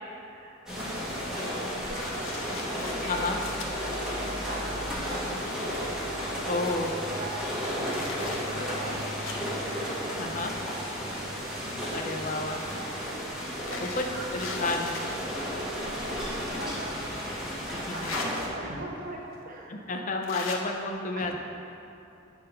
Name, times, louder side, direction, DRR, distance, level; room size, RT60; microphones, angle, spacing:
voice 1, 0.3-3.4 4.1-5.5 6.1-7.5 8.0-9.4 9.7-10.7 11.5-12.7 13.7-20.0 21.2-21.3, right 1 dB, 45° right, -1 dB, 0.9 m, -42 dB
sound 1, 0.7-18.5, equal, 5° right, 1.4 m, -33 dB
sound 2, 2.0-3.7 4.4-4.5 5.2-5.3 5.6-7.0 7.5-9.5 10.4-11.5 12.5-15.1 16.3-16.4 17.8-18.3 19.3-19.4 20.2-20.6, left 4 dB, 75° left, 0.8 m, -41 dB
voice 2, 6.5-6.9 10.2-10.5 11.9-12.6 14.0-14.1 14.3-14.9 17.7-18.1 19.9-21.3, left 3 dB, 40° left, 3 dB, 0.5 m, -30 dB
8.6 x 3.8 x 5.3 m, 2.8 s
head